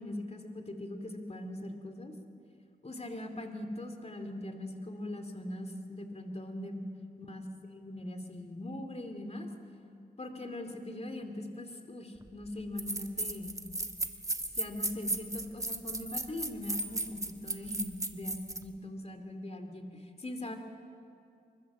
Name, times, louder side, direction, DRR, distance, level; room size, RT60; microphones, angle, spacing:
voice 1, 0.0-2.1 2.8-6.9 7.2-7.4 7.7-9.5 10.2-13.6 14.6-20.6, left 1 dB, 35° left, 6 dB, 2.5 m, -41 dB
sound 1, 12.2-12.3 12.8-18.6, right 2 dB, 20° right, 1.4 m, -35 dB
25.0 x 24.0 x 7.4 m, 2.4 s
wide cardioid pair, 90°, 18 cm